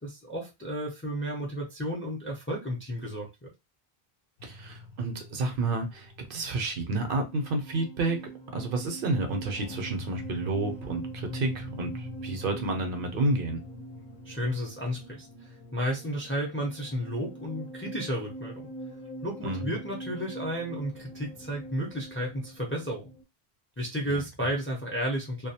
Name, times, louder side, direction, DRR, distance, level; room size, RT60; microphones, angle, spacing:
voice 1, 0.0-3.3 14.2-18.6 19.2-23.1 23.8-25.5, equal, 15° left, -1 dB, 0.4 m, -32 dB
sound 1, 4.4-23.2, right 1 dB, 55° left, 0.7 m, -43 dB
voice 2, 4.4-8.2 8.5-13.6 19.4-19.8 24.1-24.5, right 2 dB, 65° right, 5 dB, 0.7 m, -30 dB
2.3 x 2.1 x 2.7 m, 0.23 s
omnidirectional pair, 1.0 m